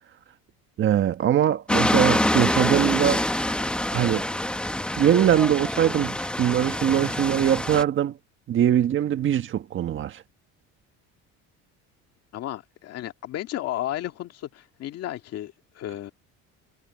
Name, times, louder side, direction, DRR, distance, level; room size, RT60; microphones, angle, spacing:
voice 1, 0.8-3.2 3.9-4.2 5.0-8.2 8.5-10.2, right 10 dB, 40° right, 1.4 m, -22 dB
sound 1, 1.7-7.8, left 1 dB, 5° left, 1.0 m, -25 dB
voice 2, 12.3-16.1, left 13 dB, 55° left, 2.1 m, -33 dB
cardioid pair, 145°, 30 cm